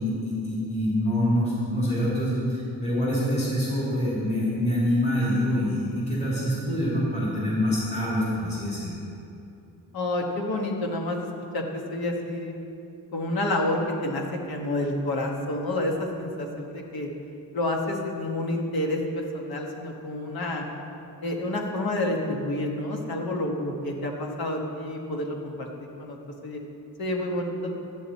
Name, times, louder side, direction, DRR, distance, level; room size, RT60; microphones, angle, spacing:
voice 1, 0.0-9.0, equal, 15° left, -8 dB, 2.6 m, -25 dB
voice 2, 9.9-11.3 11.5-12.5 13.1-17.1 17.5-20.6 21.2-25.7 26.0-26.2 26.4-26.6 27.0-27.7, left 1 dB, 70° left, 1 dB, 1.5 m, -29 dB
12.5 x 8.6 x 4.2 m, 2.7 s
wide cardioid pair, 155°, 38 cm